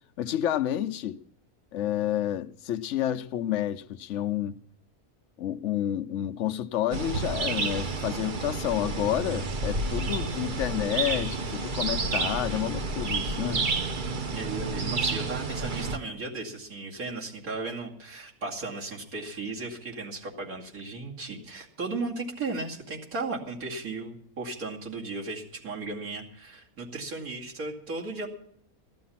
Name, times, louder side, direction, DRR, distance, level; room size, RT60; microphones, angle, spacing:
voice 1, 0.2-1.2 1.7-4.6 5.4-13.6, left 12 dB, 60° left, 1.0 m, -30 dB
sound 1, 6.9-16.0, right 3 dB, 40° right, 0.9 m, -30 dB
voice 2, 14.3-28.3, right 3 dB, 70° right, 2.9 m, -35 dB
15.5 x 12.0 x 5.8 m
omnidirectional pair, 1.6 m